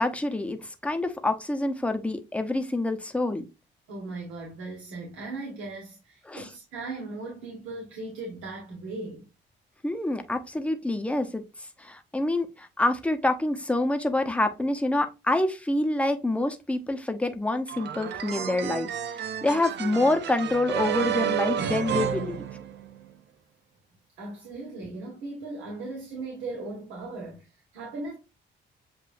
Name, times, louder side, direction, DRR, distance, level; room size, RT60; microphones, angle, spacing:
voice 1, 0.0-3.4 6.3-6.5 9.8-11.4 11.8-22.4, left 2 dB, 5° left, 0.8 m, -27 dB
voice 2, 3.9-9.2 24.2-28.1, right 2 dB, 80° right, 1.5 m, -38 dB
sound 1, 17.7-23.1, right 8 dB, 60° right, 0.6 m, -31 dB
7.6 x 2.6 x 2.6 m
cardioid pair, 90°, 20 cm